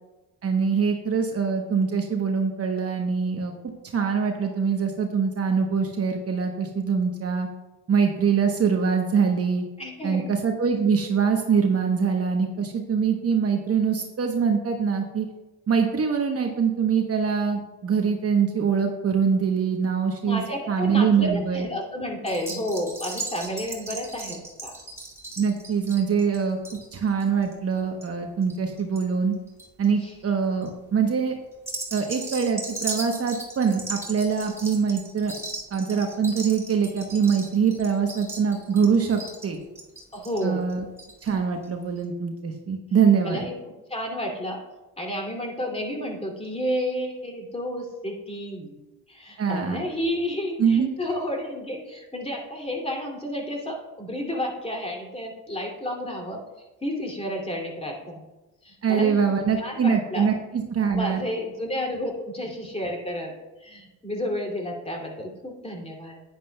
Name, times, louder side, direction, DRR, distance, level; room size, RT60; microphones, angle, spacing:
voice 1, 0.4-3.5 3.8-7.5 7.9-9.6 10.0-15.3 15.7-21.7 25.4-26.6 26.9-29.4 29.8-31.3 31.9-35.3 35.7-39.6 40.4-40.8 41.2-43.5 49.4-49.8 50.6-50.9 58.8-61.2, right 6 dB, 40° right, 3 dB, 1.0 m, -23 dB
voice 2, 9.8-10.3 20.2-24.7 30.0-30.1 40.1-40.7 43.2-43.5 43.9-44.6 45.0-56.4 56.8-58.2 58.6-59.1 59.6-60.3 60.9-63.3 63.6-66.2, equal, 15° left, 0 dB, 2.6 m, -31 dB
sound 1, 22.3-29.0 29.3-29.8 30.4-30.7 31.5-41.3 41.6-41.7 42.0-42.1, right 2 dB, 5° right, 2.3 m, -37 dB
10.5 x 9.7 x 2.3 m, 1.1 s
supercardioid pair, 75°, 37 cm